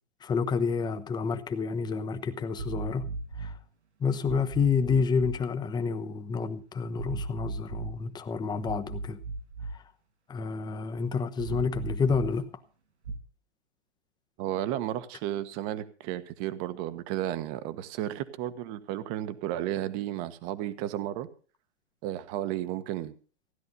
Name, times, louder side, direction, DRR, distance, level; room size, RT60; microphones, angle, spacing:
voice 1, 0.2-3.1 3.4-3.6 4.0-9.2 9.7-9.8 10.3-12.5, left 5 dB, 10° left, 1.1 m, -29 dB
sound 1, 2.6-3.6 4.2-5.4 7.0-8.0 8.6-9.8 11.4-12.3 13.0-13.2, right 3 dB, 90° right, 3.0 m, -36 dB
voice 2, 14.4-21.3 22.0-23.1, right 13 dB, 35° right, 1.3 m, -33 dB
16.0 x 10.5 x 5.4 m
hypercardioid pair, 130°, 33 cm